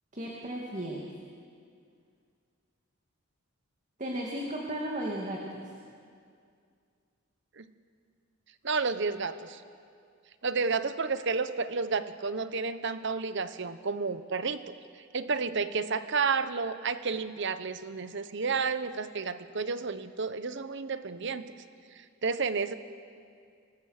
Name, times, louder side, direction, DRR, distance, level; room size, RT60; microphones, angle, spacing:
voice 1, 0.1-1.1 4.0-5.7, right 1 dB, 35° right, -1 dB, 2.2 m, -35 dB
voice 2, 8.6-9.6 10.4-14.7 15.1-21.5 22.2-22.7, right 4 dB, 60° right, 12 dB, 0.9 m, -31 dB
24.0 x 19.5 x 6.6 m, 2.3 s
head